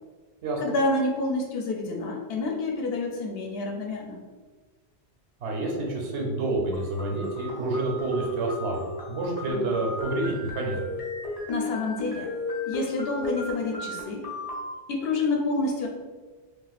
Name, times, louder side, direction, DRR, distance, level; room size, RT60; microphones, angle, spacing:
voice 1, 0.6-4.2 11.5-12.3 12.7-14.3 14.9-15.9, left 2 dB, 65° left, 1 dB, 0.8 m, -28 dB
voice 2, 5.4-10.9, right 2 dB, 80° right, -1 dB, 1.0 m, -28 dB
sound 1, 6.7-14.7, left 2 dB, 35° left, 0.3 m, -35 dB
2.5 x 2.3 x 3.9 m, 1.4 s
omnidirectional pair, 1.1 m